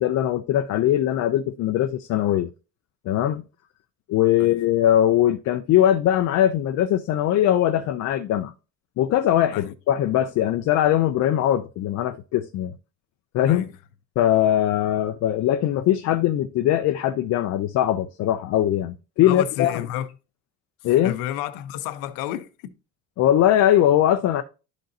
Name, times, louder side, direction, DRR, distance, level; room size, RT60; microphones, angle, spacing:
voice 1, 0.0-2.5 3.1-3.4 4.1-8.5 9.0-12.7 13.3-13.7 14.2-19.7 20.8-21.1 23.2-24.4, left 11 dB, 50° left, 0.5 m, -21 dB
voice 2, 19.2-20.1 20.8-22.7, left 12 dB, 80° left, 0.8 m, -31 dB
11.5 x 3.9 x 2.7 m
cardioid pair, 125°, 33 cm